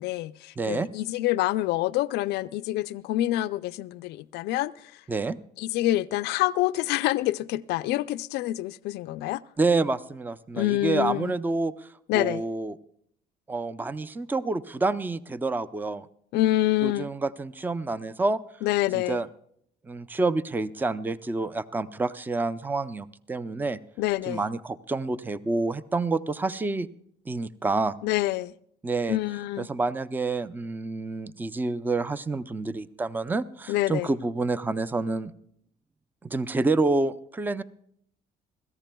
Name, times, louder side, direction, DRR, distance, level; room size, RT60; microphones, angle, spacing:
voice 1, 0.0-5.0 5.6-9.4 10.5-11.4 12.1-12.4 16.3-17.1 18.6-19.2 24.0-24.4 28.0-28.5 29.1-29.7 33.7-34.1, left 15 dB, 85° left, 0.4 m, -27 dB
voice 2, 0.6-0.9 5.1-5.4 9.6-11.7 12.1-12.8 13.5-16.1 16.8-18.4 18.9-19.3 19.9-23.8 24.3-26.9 27.3-28.0 28.8-29.2 29.6-35.3 36.2-37.6, right 3 dB, 10° right, 0.5 m, -28 dB
26.0 x 14.5 x 2.2 m
cardioid pair, 110°, 17 cm